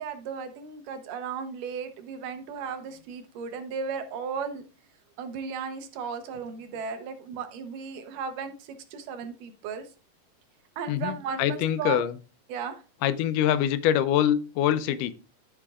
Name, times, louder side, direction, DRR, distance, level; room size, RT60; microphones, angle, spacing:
voice 1, 0.0-4.7 5.2-9.9 10.8-12.0 12.5-12.8, right 6 dB, 85° right, 8 dB, 2.5 m, -35 dB
voice 2, 10.9-12.2 13.0-15.1, left 10 dB, 85° left, 13 dB, 2.2 m, -24 dB
13.5 x 5.9 x 2.4 m, 0.33 s
omnidirectional pair, 3.7 m